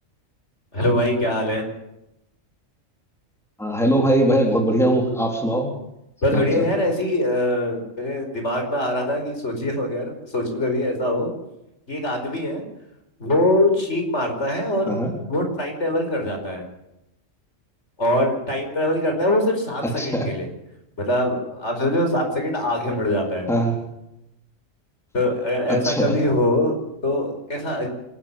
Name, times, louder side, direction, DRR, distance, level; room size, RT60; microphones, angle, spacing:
voice 1, 0.7-1.6 6.2-11.3 11.9-12.6 13.2-15.0 15.3-16.7 18.0-20.5 21.0-23.5 25.1-27.9, left 1 dB, 60° left, 3 dB, 5.1 m, -23 dB
voice 2, 3.6-5.7 6.3-6.7 14.9-15.1 19.8-20.3 23.5-23.7 25.7-26.2, right 1 dB, ahead, 2 dB, 3.9 m, -21 dB
27.5 x 13.5 x 7.4 m, 0.86 s
omnidirectional pair, 1.4 m